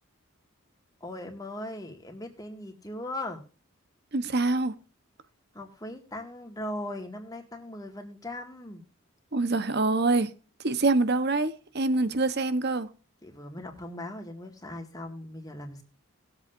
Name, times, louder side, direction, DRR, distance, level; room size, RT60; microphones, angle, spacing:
voice 1, 1.0-3.4 5.5-8.8 13.2-15.8, left 1 dB, 15° left, 2.0 m, -39 dB
voice 2, 4.1-4.7 9.3-10.3 10.6-12.9, right 3 dB, 50° right, 1.0 m, -25 dB
20.0 x 8.1 x 2.6 m
head